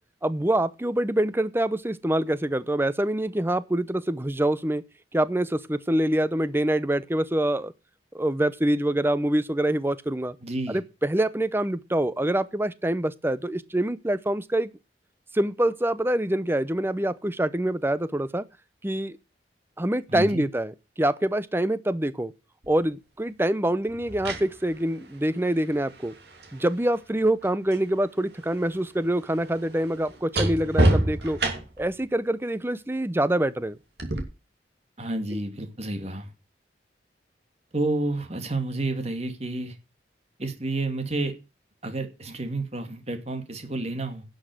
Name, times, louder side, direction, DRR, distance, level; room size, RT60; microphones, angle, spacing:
voice 1, 0.2-4.8 5.1-7.7 8.1-10.4 10.7-14.7 15.3-18.4 18.8-19.2 19.8-22.3 22.7-26.1 26.5-31.4 31.8-33.8, right 1 dB, 15° right, 0.7 m, -25 dB
voice 2, 10.4-10.8 20.1-20.5 35.0-36.3 37.7-39.8 40.4-41.3 41.8-44.2, right 2 dB, 35° right, 2.4 m, -30 dB
sound 1, 22.6-22.8 23.9-27.9 28.2-31.9 34.0-34.2, right 1 dB, 65° right, 2.7 m, -29 dB
11.0 x 6.4 x 7.8 m
head